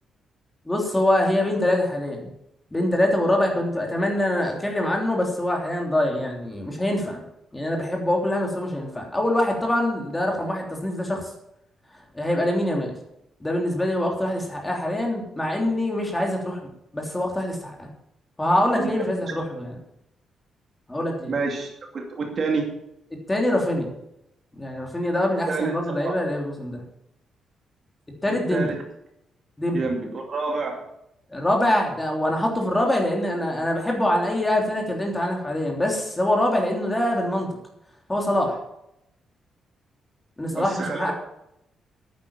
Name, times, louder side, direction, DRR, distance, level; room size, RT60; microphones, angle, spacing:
voice 1, 0.6-2.3 2.7-7.2 7.5-11.2 12.1-12.9 13.4-16.6 16.9-17.9 18.4-19.8 20.9-21.3 23.3-23.9 24.6-26.8 28.2-28.7 29.6-29.8 31.3-37.6 38.1-38.6 40.4-41.1, left 1 dB, 10° left, 1 dB, 3.2 m, -24 dB
voice 2, 21.3-22.7 25.5-26.1 28.3-28.8 29.7-30.8 40.5-41.1, right 4 dB, 40° right, 2 dB, 2.4 m, -28 dB
11.0 x 9.7 x 7.3 m, 0.81 s
cardioid pair, 150°, 0 cm